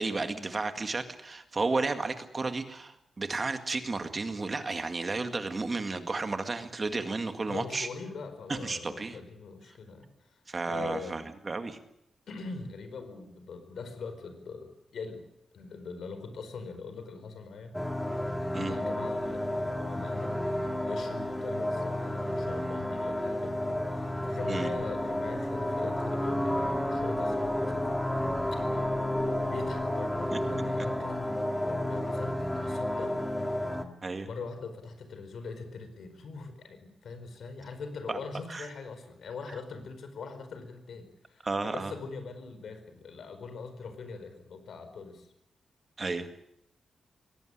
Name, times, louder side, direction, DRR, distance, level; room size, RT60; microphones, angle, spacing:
voice 1, 0.0-7.9 8.5-9.2 10.5-11.8 18.5-18.7 24.5-24.7 30.3-30.4 34.0-34.3 38.1-38.2 38.5-38.7 41.4-41.9 46.0-46.3, right 3 dB, 30° right, 8 dB, 2.0 m, -32 dB
voice 2, 7.5-10.4 10.7-11.2 12.3-15.3 15.5-17.7 18.6-20.4 20.9-28.0 29.4-33.8 34.2-45.3, left 4 dB, 70° left, 9 dB, 4.6 m, -42 dB
sound 1, 17.7-33.8, left 1 dB, 5° left, 2.0 m, -31 dB
22.5 x 18.0 x 10.0 m, 0.77 s
wide cardioid pair, 165°, 0 cm